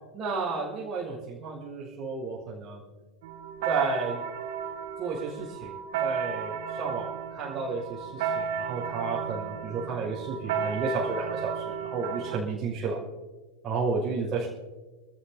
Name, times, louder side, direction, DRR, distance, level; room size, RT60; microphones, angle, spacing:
voice 1, 0.1-2.8 3.6-4.2 5.0-5.7 6.0-7.1 7.3-13.0 13.6-14.5, right 4 dB, 25° right, -5 dB, 6.1 m, -32 dB
sound 1, 3.2-12.4, right 7 dB, 50° right, 1.2 m, -33 dB
28.5 x 14.5 x 2.8 m, 1.2 s
figure-of-eight pair, 90°, 0 cm